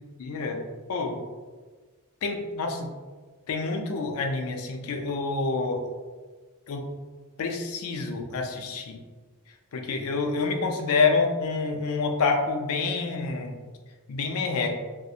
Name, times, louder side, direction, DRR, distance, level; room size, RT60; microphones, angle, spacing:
voice 1, 0.2-0.6 0.9-1.2 2.2-2.9 3.5-5.8 6.7-6.9 7.4-9.0 9.7-13.6 14.1-14.8, left 4 dB, 70° left, 3 dB, 0.4 m, -27 dB
2.6 x 2.0 x 2.4 m, 1.4 s
head